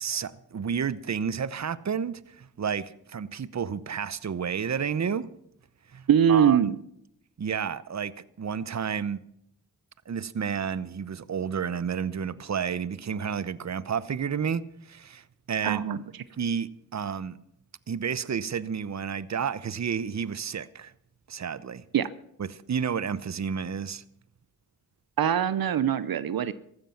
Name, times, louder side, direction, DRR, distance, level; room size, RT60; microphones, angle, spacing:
voice 1, 0.0-5.3 5.9-6.7 7.4-8.1 8.4-9.2 10.1-15.8 16.4-17.4 17.9-20.9 21.3-21.8 22.4-24.0, right 7 dB, 50° right, 0.8 m, -31 dB
voice 2, 6.1-6.7 15.6-16.0 21.9-22.1 25.2-26.5, right 9 dB, 80° right, 0.7 m, -22 dB
15.0 x 13.0 x 5.8 m
cardioid pair, 50°, 35 cm